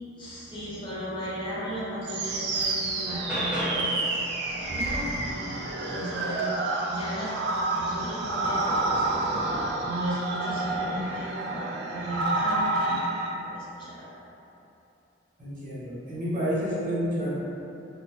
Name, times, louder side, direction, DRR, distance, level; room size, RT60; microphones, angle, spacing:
voice 1, 0.2-5.5 5.8-6.5 6.8-7.4 7.7-13.0 13.4-14.1, equal, 25° left, -9 dB, 0.6 m, -35 dB
sound 1, 1.7-1.8 2.3-4.1 6.5-6.6 7.0-10.0 10.7-11.2 12.2-12.5, equal, 5° right, 0.8 m, -37 dB
sound 2, 2.0-13.3, right 2 dB, 60° right, 0.3 m, -29 dB
voice 2, 15.4-17.4, equal, 45° right, -9 dB, 0.8 m, -29 dB
3.5 x 2.0 x 2.9 m, 2.9 s
head